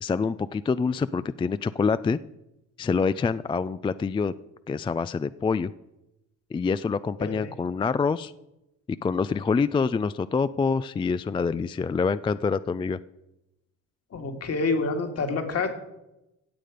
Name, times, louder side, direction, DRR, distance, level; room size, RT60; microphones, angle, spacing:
voice 1, 0.0-2.2 2.8-4.3 4.7-5.7 6.5-8.3 8.9-13.0, left 5 dB, 15° left, 15 dB, 0.3 m, -26 dB
voice 2, 7.2-7.5 14.1-15.7, left 3 dB, 50° left, 5 dB, 2.2 m, -28 dB
16.0 x 7.7 x 5.0 m, 0.92 s
supercardioid pair, 80°, 32 cm